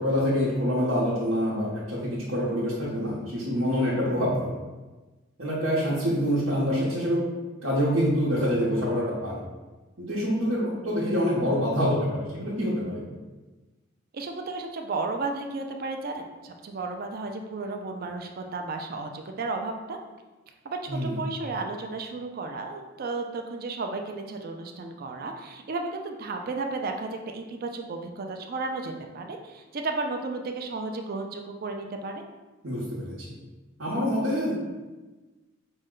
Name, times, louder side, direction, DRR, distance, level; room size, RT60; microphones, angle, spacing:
voice 1, 0.0-4.5 5.4-7.2 7.6-9.4 10.0-13.0 20.9-21.2 32.6-33.3 33.8-34.5, equal, 85° right, -8 dB, 0.9 m, -26 dB
voice 2, 14.1-20.0 20.6-32.2, right 3 dB, 50° right, 4 dB, 0.4 m, -33 dB
5.2 x 2.2 x 3.7 m, 1.2 s
head